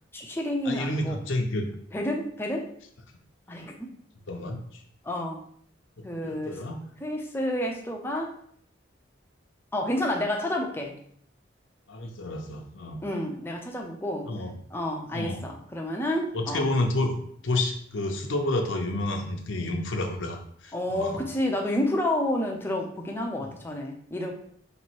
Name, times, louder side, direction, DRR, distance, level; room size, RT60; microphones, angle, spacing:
voice 1, 0.1-1.2 1.9-2.7 3.5-3.9 5.0-5.5 6.0-6.6 7.0-8.3 9.7-11.0 13.0-14.3 14.7-16.7 20.7-24.3, left 1 dB, 10° left, 1 dB, 0.5 m, -30 dB
voice 2, 0.6-1.7 4.3-4.8 6.2-6.8 11.9-13.0 14.2-14.5 15.1-15.5 16.3-17.1 17.4-21.2 23.4-23.6, left 2 dB, 75° left, 3 dB, 0.7 m, -30 dB
3.3 x 3.0 x 4.5 m, 0.63 s
head